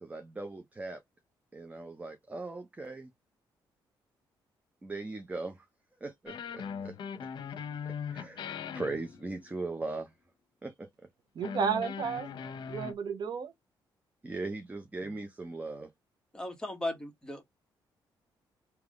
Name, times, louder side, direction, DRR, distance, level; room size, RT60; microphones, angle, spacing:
voice 1, 0.0-1.0 1.5-3.1 4.8-5.6 6.0-7.0 8.1-8.4 8.7-10.1 10.6-11.1 14.2-15.9, right 3 dB, 15° right, 0.8 m, -39 dB
sound 1, 6.3-9.6 11.4-12.9, left 7 dB, 65° left, 0.8 m, -40 dB
voice 2, 11.3-13.5, right 6 dB, 55° right, 0.8 m, -33 dB
voice 3, 16.3-17.4, left 1 dB, 10° left, 1.7 m, -36 dB
3.4 x 3.0 x 3.7 m
cardioid pair, 110°, 9 cm